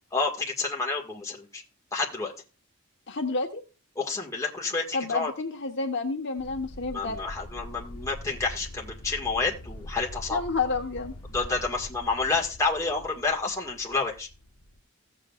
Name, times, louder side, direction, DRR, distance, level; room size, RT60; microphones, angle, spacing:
voice 1, 0.1-1.6 1.9-2.3 4.0-5.3 6.9-10.4 11.3-14.3, left 3 dB, 15° left, -1 dB, 1.8 m, -29 dB
voice 2, 3.1-3.6 4.9-7.2 10.3-11.1, left 4 dB, 55° left, 2 dB, 1.2 m, -29 dB
sound 1, 6.4-14.8, left 1 dB, 80° left, 1.1 m, -43 dB
16.0 x 7.7 x 2.4 m, 0.30 s
head